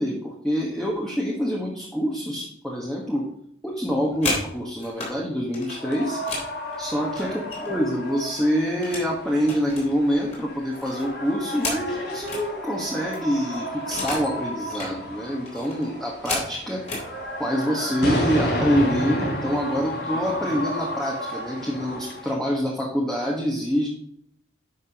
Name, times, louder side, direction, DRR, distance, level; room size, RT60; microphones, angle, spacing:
voice 1, 0.0-3.3 3.6-6.2 6.8-16.9 17.4-23.9, equal, 5° left, -4 dB, 1.2 m, -26 dB
sound 1, 3.9-5.1 5.5-7.9 8.2-9.1 9.4-12.5 12.8-12.9 13.1-14.3 14.6-14.9 15.5-17.1 17.9-18.1 18.4-18.7 19.0-19.6, left 2 dB, 35° left, 3.4 m, -33 dB
sound 2, 5.7-22.3, equal, 65° left, 3.3 m, -32 dB
10.5 x 5.9 x 2.8 m, 0.70 s
head